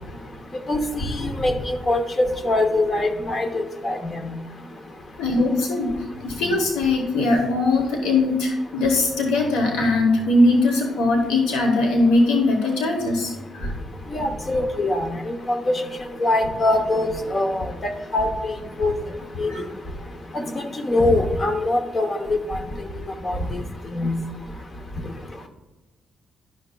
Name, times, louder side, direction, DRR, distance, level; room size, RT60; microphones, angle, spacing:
voice 1, 0.7-2.0 2.4-4.3 14.1-15.1 15.5-15.7 16.2-18.9 19.4-19.5 20.5-22.6 23.2-23.6 23.9-24.1, left 2 dB, 35° left, 6 dB, 0.9 m, -23 dB
voice 2, 5.2-5.9 6.2-13.7 19.5-19.6, left 2 dB, 90° left, 2 dB, 1.0 m, -20 dB
10.5 x 5.8 x 2.3 m, 1.1 s
cardioid pair, 90°, 0 cm